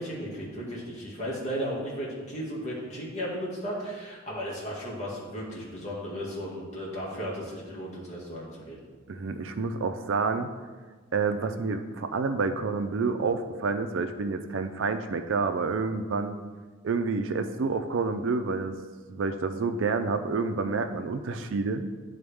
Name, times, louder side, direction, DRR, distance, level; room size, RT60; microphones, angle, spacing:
voice 1, 0.0-8.8, equal, 35° left, -5 dB, 1.9 m, -35 dB
voice 2, 9.1-10.5 11.1-16.4 16.8-18.7 19.1-21.9, right 4 dB, 65° right, 8 dB, 0.4 m, -28 dB
11.0 x 3.9 x 3.5 m, 1.4 s
head